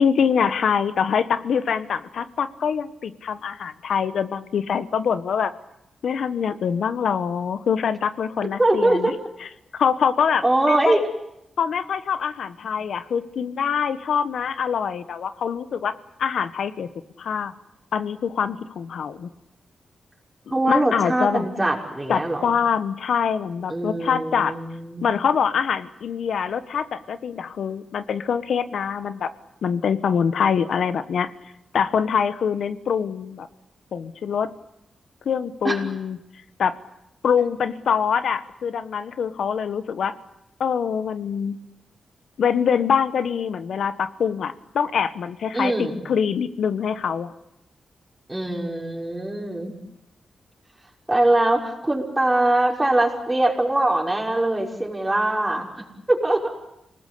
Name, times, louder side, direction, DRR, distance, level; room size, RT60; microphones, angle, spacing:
voice 1, 0.0-5.5 6.0-9.1 9.7-11.0 11.6-15.9 16.2-16.9 17.2-17.5 17.9-19.3 20.7-21.5 22.1-24.5 25.0-29.3 29.6-31.3 31.7-33.5 33.9-34.5 35.2-36.2 36.6-36.8 37.2-40.1 40.6-41.6 42.4-47.3, left 7 dB, 75° left, 12 dB, 1.2 m, -24 dB
voice 2, 8.6-9.1 10.4-11.0 20.5-22.5 23.7-25.1 35.6-35.8 45.5-46.0 48.3-49.7 51.1-55.7 56.1-56.5, right 1 dB, 15° right, -1 dB, 6.0 m, -22 dB
27.5 x 19.5 x 8.5 m, 0.87 s
cardioid pair, 80°, 0 cm